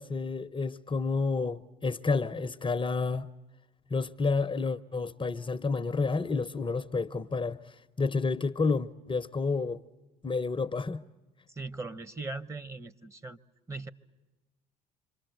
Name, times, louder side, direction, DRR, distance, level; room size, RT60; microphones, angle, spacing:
voice 1, 0.0-3.3 3.9-9.8 10.2-11.0, left 4 dB, 25° left, 0.8 m, -30 dB
voice 2, 11.5-13.4 13.7-13.9, right 3 dB, 15° right, 1.0 m, -39 dB
27.0 x 24.5 x 7.9 m
hypercardioid pair, 60°, 20 cm